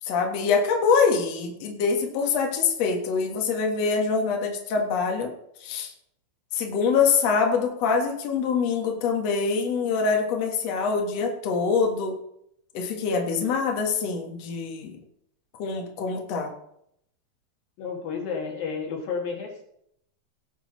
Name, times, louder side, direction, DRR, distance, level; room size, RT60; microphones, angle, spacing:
voice 1, 0.0-5.3 5.6-5.9 6.5-12.1 12.7-15.0 15.6-16.5, left 5 dB, 85° left, 1 dB, 1.4 m, -24 dB
voice 2, 17.8-19.6, left 5 dB, 55° left, 1 dB, 3.2 m, -31 dB
18.0 x 7.4 x 4.0 m, 0.73 s
omnidirectional pair, 5.6 m